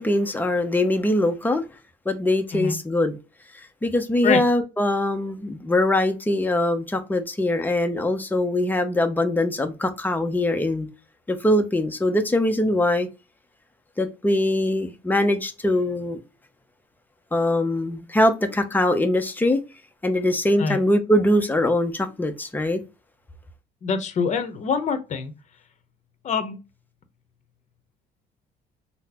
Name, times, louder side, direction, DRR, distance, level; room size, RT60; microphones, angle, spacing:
voice 1, 0.0-1.6 2.1-3.2 3.5-10.9 11.3-13.1 14.0-16.2 17.3-19.6 20.0-22.8, left 1 dB, 10° left, 0.7 m, -22 dB
voice 2, 23.8-25.3 26.2-26.6, left 5 dB, 45° left, 0.8 m, -25 dB
3.8 x 2.1 x 2.9 m
cardioid pair, 110°, 17 cm